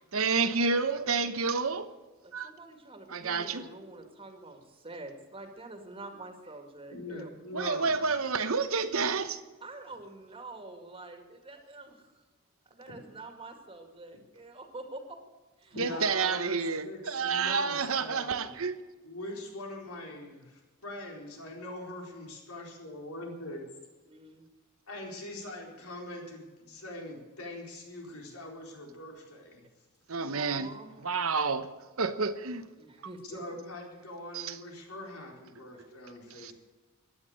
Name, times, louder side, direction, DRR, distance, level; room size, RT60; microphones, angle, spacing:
voice 1, 0.1-1.9 2.3-2.5 3.1-3.7 7.5-9.4 15.8-18.8 30.1-30.7 31.0-31.7 32.0-32.6 34.3-34.6 36.3-36.5, right 4 dB, 70° right, 11 dB, 1.0 m, -29 dB
voice 2, 2.2-7.3 9.6-12.1 12.7-15.2 15.6-16.3 24.0-24.4 30.1-30.9 32.8-33.4, right 2 dB, 25° right, 5 dB, 2.1 m, -46 dB
voice 3, 6.9-8.1 15.7-16.6 16.8-18.6 19.0-23.6 24.9-29.6 33.2-36.5, left 1 dB, 85° left, 0 dB, 4.2 m, -42 dB
16.0 x 11.0 x 6.6 m, 1.2 s
head